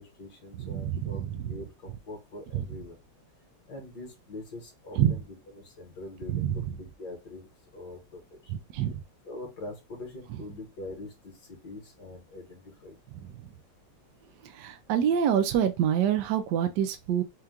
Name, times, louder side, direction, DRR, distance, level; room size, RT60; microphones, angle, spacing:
voice 1, 0.0-1.2 1.5-3.0 3.7-8.5 9.2-13.0, left 2 dB, 55° left, 1.6 m, -44 dB
voice 2, 0.6-1.5 2.5-2.6 5.0-5.2 6.3-6.5 8.5-9.0 14.4-17.2, right 9 dB, 80° right, 1.0 m, -26 dB
4.5 x 2.3 x 3.6 m
omnidirectional pair, 2.4 m